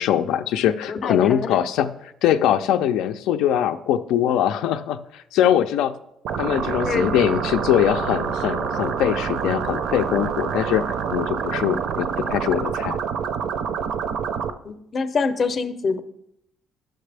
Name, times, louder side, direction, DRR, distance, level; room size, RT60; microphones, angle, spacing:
voice 1, 0.0-1.9 2.2-5.9 6.4-13.0, left 10 dB, 85° left, 8 dB, 0.4 m, -22 dB
voice 2, 0.9-1.5 6.8-7.1 14.6-16.0, left 4 dB, 30° left, 10 dB, 0.6 m, -25 dB
sound 1, 6.2-14.5, right 7 dB, 60° right, 0.5 m, -27 dB
10.0 x 6.5 x 3.3 m, 0.78 s
cardioid pair, 155°, 0 cm